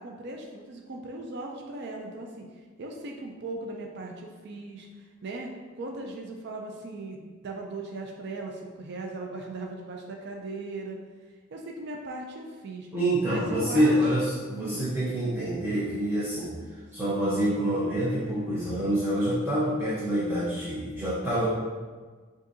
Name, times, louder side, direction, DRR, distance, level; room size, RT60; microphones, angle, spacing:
voice 1, 0.0-2.4 2.8-5.5 5.8-11.0 11.5-12.9 13.2-14.0 14.6-14.9, right 2 dB, 55° right, 1 dB, 0.4 m, -38 dB
voice 2, 12.9-16.5 16.9-21.5, right 1 dB, 10° right, -11 dB, 0.8 m, -26 dB
6.2 x 2.6 x 2.6 m, 1.4 s
head